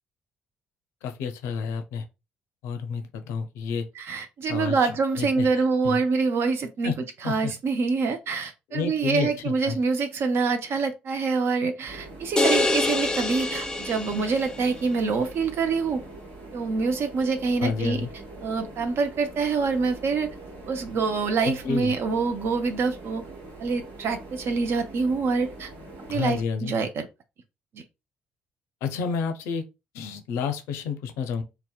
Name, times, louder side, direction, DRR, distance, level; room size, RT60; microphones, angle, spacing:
voice 1, 1.0-2.0 2.6-3.9 4.5-4.9 5.2-6.0 6.8-6.9 7.2-7.5 8.7-9.8 17.6-18.1 21.4-21.9 26.1-26.7 28.8-29.6 29.9-31.4, left 6 dB, 70° left, 0.4 m, -30 dB
voice 2, 4.0-6.9 7.2-16.0 16.5-18.0 18.4-20.3 20.7-23.2 23.6-25.7 26.1-27.1 27.7-27.8, right 4 dB, 55° right, 0.5 m, -26 dB
sound 1, 11.9-26.4, right 2 dB, 70° right, 1.2 m, -43 dB
sound 2, 12.4-14.7, left 2 dB, 15° left, 0.4 m, -25 dB
2.7 x 2.0 x 2.3 m
hypercardioid pair, 45°, 5 cm